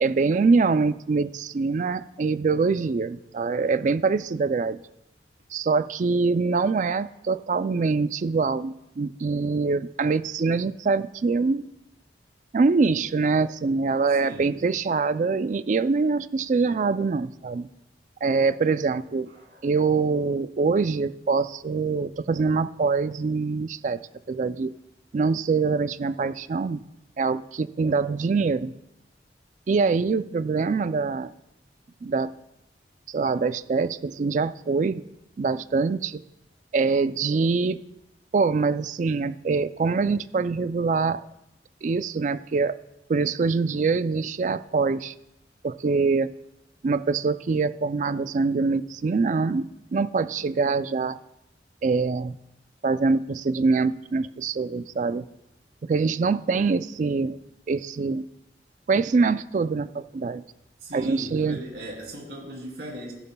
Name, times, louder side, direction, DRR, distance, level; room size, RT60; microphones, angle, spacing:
voice 1, 0.0-4.8 5.5-11.7 12.5-17.7 18.2-19.3 19.6-24.0 24.3-24.7 25.1-26.8 27.2-28.7 29.7-31.3 32.0-32.3 33.1-35.0 35.4-36.2 36.7-37.8 38.3-41.2 41.8-42.8 43.1-45.1 45.6-46.3 46.8-49.7 49.9-51.2 51.8-52.3 52.8-55.3 55.8-57.4 57.7-58.2 58.9-60.4 60.9-61.6, right 4 dB, 45° right, 14 dB, 0.3 m, -24 dB
voice 2, 14.1-14.5 19.3-19.7 27.9-28.0 60.8-63.1, right 1 dB, 60° right, -1 dB, 2.9 m, -39 dB
14.5 x 11.0 x 2.3 m, 0.87 s
head